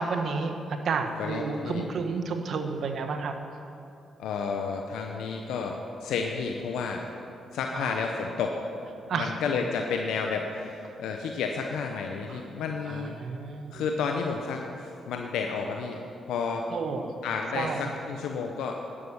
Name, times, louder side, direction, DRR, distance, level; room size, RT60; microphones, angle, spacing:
voice 1, 0.0-3.4 7.7-8.0 9.1-9.3 12.9-13.8 16.7-17.1 17.5-17.8, right 4 dB, 65° right, 6 dB, 1.2 m, -31 dB
voice 2, 1.2-1.8 4.2-7.1 7.5-8.6 9.1-13.2 13.7-16.7 17.2-18.8, left 5 dB, 85° left, 2 dB, 0.8 m, -31 dB
11.0 x 10.5 x 7.1 m, 2.7 s
supercardioid pair, 60°, 0 cm